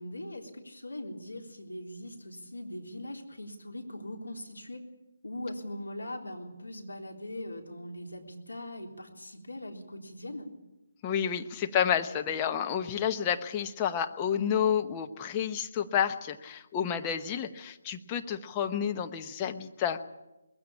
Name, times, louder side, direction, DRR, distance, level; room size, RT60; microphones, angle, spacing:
voice 1, 0.0-4.9 5.2-10.5, left 1 dB, 80° left, 2 dB, 3.7 m, -41 dB
voice 2, 11.0-20.1, left 8 dB, 20° left, 6 dB, 1.0 m, -30 dB
21.0 x 16.0 x 8.6 m, 0.99 s
figure-of-eight pair, 145°, 0 cm